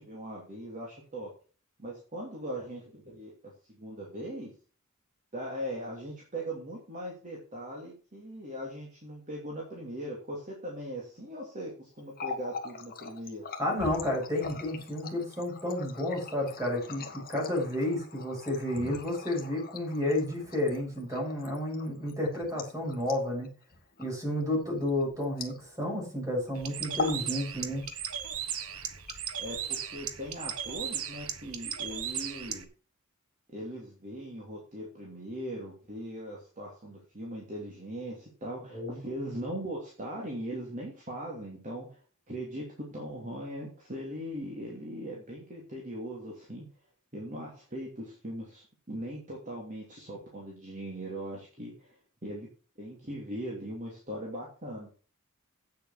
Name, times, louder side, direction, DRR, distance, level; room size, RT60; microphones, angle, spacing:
voice 1, 0.0-1.3 1.8-4.5 5.3-13.4 29.4-32.7 33.5-42.0 42.3-46.6 47.1-51.9 52.2-52.5 52.8-54.9, equal, 35° right, -3 dB, 2.9 m, -40 dB
Water tap faucet, 12.0-26.0 26.3-26.5 26.8-27.3 27.6-28.3 28.9-29.7, left 4 dB, 45° left, 1.7 m, -42 dB
voice 2, 13.6-23.5 24.0-27.8 38.7-39.0, left 1 dB, 15° right, -1 dB, 6.2 m, -31 dB
Bird, 26.6-32.6, right 8 dB, 70° right, 1.3 m, -37 dB
8.6 x 7.6 x 6.1 m, 0.38 s
head